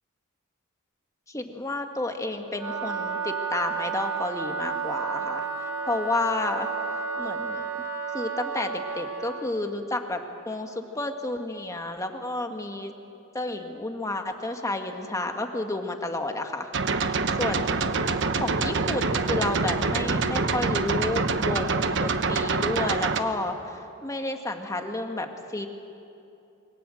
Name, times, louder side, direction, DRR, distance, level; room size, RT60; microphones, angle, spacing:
voice 1, 1.3-5.5 5.9-6.7 7.2-7.7 8.1-12.9 13.3-16.7 17.4-18.0 18.3-25.7, left 2 dB, 15° left, 4 dB, 1.7 m, -31 dB
Wind instrument woodwind instrument, 2.5-9.5, right 5 dB, 90° right, 2.0 m, -32 dB
sound 1, 16.7-23.2, right 4 dB, 60° right, 1.1 m, -25 dB
27.0 x 24.0 x 7.7 m, 2.7 s
head